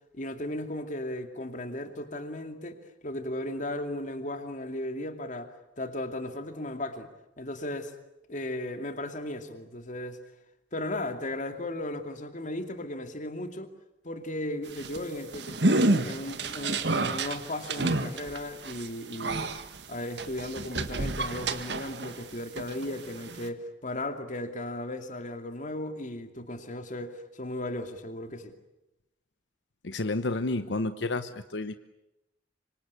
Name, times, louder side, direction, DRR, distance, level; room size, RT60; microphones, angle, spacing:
voice 1, 0.1-7.1 7.4-7.9 8.3-10.2 10.7-13.7 14.0-19.6 19.9-28.5, left 1 dB, 45° left, 7 dB, 2.5 m, -36 dB
sound 1, 14.7-22.2 22.6-23.5, right 2 dB, 70° right, 1.7 m, -30 dB
voice 2, 29.8-31.8, left 2 dB, 85° left, 11 dB, 1.0 m, -30 dB
25.5 x 25.5 x 8.3 m, 0.92 s
head